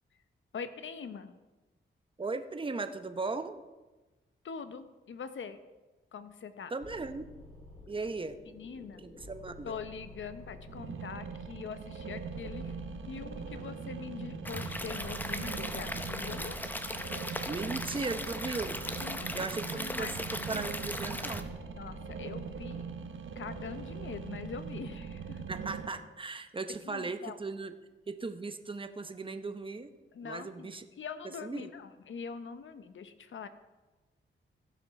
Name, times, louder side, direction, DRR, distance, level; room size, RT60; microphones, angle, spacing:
voice 1, 0.5-1.4 4.4-5.6 6.1-6.7 8.5-9.0 9.6-12.8 13.1-16.6 18.0-18.1 19.0-19.3 19.7-20.2 20.5-20.7 21.8-22.8 23.4-25.5 26.8-27.4 30.1-33.5, left 6 dB, 70° left, 11 dB, 0.8 m, -43 dB
voice 2, 2.2-3.6 6.7-7.2 7.9-8.4 9.0-9.8 17.4-18.8 19.3-20.1 20.5-21.5 25.5-27.7 28.1-29.9 30.2-30.9 31.4-31.7, right 3 dB, 25° right, 9 dB, 0.8 m, -37 dB
sound 1, 6.8-24.6, left 1 dB, 30° left, 2.8 m, -51 dB
sound 2, 10.7-25.9, right 6 dB, 75° right, 1.0 m, -41 dB
Stream / Liquid, 14.4-21.4, left 1 dB, 10° left, 0.8 m, -38 dB
16.5 x 5.9 x 4.7 m, 1.2 s
cardioid pair, 85°, 20 cm